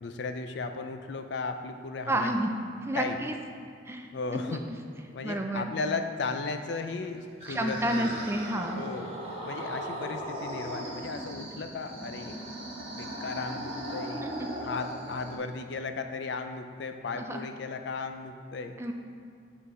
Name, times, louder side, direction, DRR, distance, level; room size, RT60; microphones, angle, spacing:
voice 1, 0.0-2.3 2.9-3.2 4.1-4.6 5.1-8.1 8.7-12.4 12.9-14.3 14.6-18.8, left 4 dB, 60° left, 7 dB, 0.4 m, -35 dB
voice 2, 2.1-2.5 2.8-3.4 3.8-4.1 4.5-4.6 5.2-5.7 7.5-8.8 14.2-14.5 17.1-17.5 18.8-18.9, right 1 dB, 15° right, 4 dB, 0.3 m, -30 dB
sound 1, 6.9-15.3, right 1 dB, 30° right, 1.2 m, -38 dB
8.0 x 3.9 x 4.8 m, 2.3 s
head